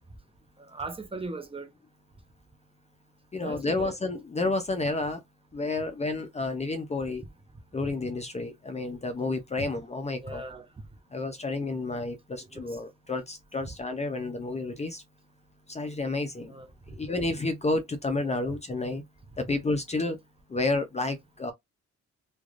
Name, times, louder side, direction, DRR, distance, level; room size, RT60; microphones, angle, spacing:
voice 1, 0.6-1.7 3.4-4.0 7.8-7.9 8.7-8.8 9.6-9.7 10.2-10.6 12.5-12.7 13.7-13.8 16.5-16.7 18.2-18.5, right 2 dB, 20° right, 0.7 m, -38 dB
voice 2, 3.3-5.2 5.5-7.2 7.7-10.4 11.1-15.0 15.7-16.5 17.0-19.0 19.4-20.2 20.5-21.5, left 2 dB, 20° left, 0.6 m, -30 dB
3.2 x 2.4 x 2.5 m
cardioid pair, 90°, 30 cm